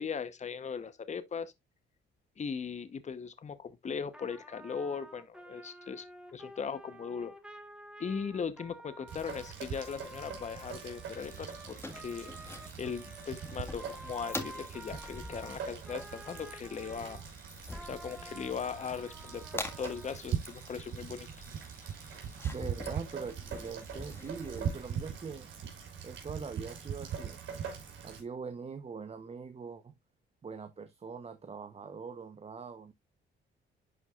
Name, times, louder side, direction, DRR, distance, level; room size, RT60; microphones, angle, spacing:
voice 1, 0.0-1.5 2.4-6.1 6.3-7.3 8.0-12.3 12.8-17.3 17.8-21.3, left 6 dB, 35° left, 0.9 m, -39 dB
Trumpet, 4.1-17.2 17.7-20.2, right 1 dB, 5° right, 1.5 m, -51 dB
Rain, 9.1-28.2, right 7 dB, 75° right, 3.6 m, -41 dB
sound 1, 11.1-25.3, left 2 dB, 10° left, 1.7 m, -47 dB
voice 2, 22.5-25.5 26.0-27.4 28.0-29.9 30.4-33.0, right 5 dB, 30° right, 0.8 m, -43 dB
11.0 x 4.7 x 2.4 m
cardioid pair, 90°, 20 cm